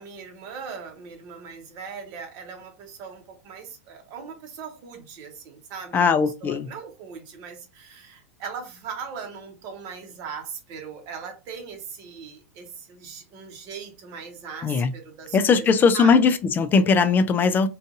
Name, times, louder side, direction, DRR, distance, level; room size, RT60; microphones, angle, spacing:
voice 1, 0.0-15.7 15.9-16.2, right 5 dB, 45° right, 0.9 m, -39 dB
voice 2, 5.9-6.7 14.6-14.9 15.3-17.7, left 5 dB, 25° left, 0.3 m, -19 dB
2.5 x 2.4 x 2.5 m
hypercardioid pair, 100°, 8 cm